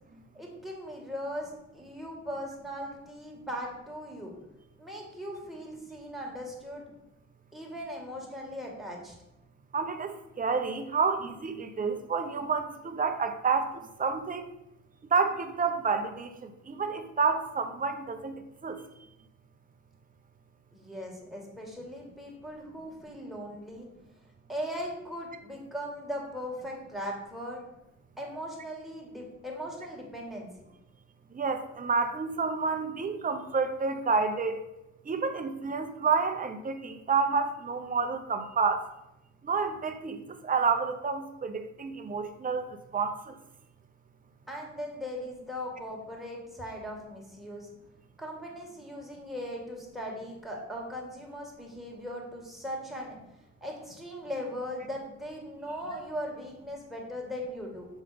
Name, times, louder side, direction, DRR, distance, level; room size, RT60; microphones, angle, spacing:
voice 1, 0.3-4.3 4.8-6.9 7.5-9.1 20.7-23.9 24.5-27.6 28.2-30.5 44.5-47.7 48.2-53.2 53.6-57.9, equal, ahead, -1 dB, 2.0 m, -39 dB
voice 2, 9.7-14.5 15.1-18.3 18.6-18.8 31.3-34.6 35.1-38.8 39.4-42.7 42.9-43.3, right 5 dB, 30° right, 7 dB, 0.8 m, -29 dB
7.2 x 3.8 x 5.1 m, 0.90 s
cardioid pair, 90°, 30 cm